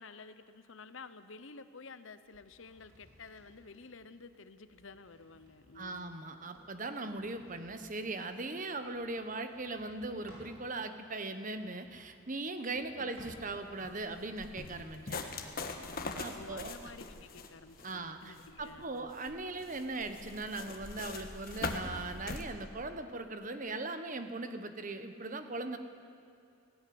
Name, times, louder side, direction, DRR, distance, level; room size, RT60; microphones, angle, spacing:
voice 1, 0.0-6.1 13.0-13.3 16.3-19.1 19.5-19.6, left 4 dB, 65° left, 12 dB, 0.9 m, -52 dB
sound 1, 2.2-10.6 11.4-13.9 14.3-18.0, equal, 80° right, 5.1 m, -62 dB
voice 2, 5.7-15.2 16.2-16.7 17.8-25.8, right 2 dB, 35° right, 8 dB, 1.2 m, -39 dB
sound 2, 13.2-22.4, left 3 dB, 45° left, 1.5 m, -42 dB
17.5 x 16.5 x 9.5 m, 2.5 s
head